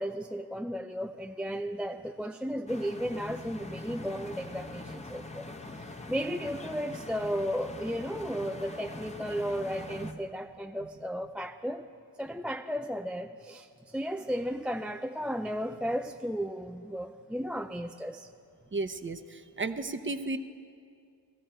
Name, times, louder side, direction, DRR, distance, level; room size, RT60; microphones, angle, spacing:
voice 1, 0.0-5.5 6.1-11.8 12.2-13.7 13.9-18.3, equal, 5° right, 6 dB, 0.3 m, -34 dB
sound 1, 2.7-10.1, left 2 dB, 15° left, 0.9 m, -43 dB
voice 2, 18.7-20.4, right 3 dB, 25° right, 10 dB, 0.8 m, -34 dB
17.5 x 13.5 x 4.4 m, 2.3 s
cardioid pair, 60°, 44 cm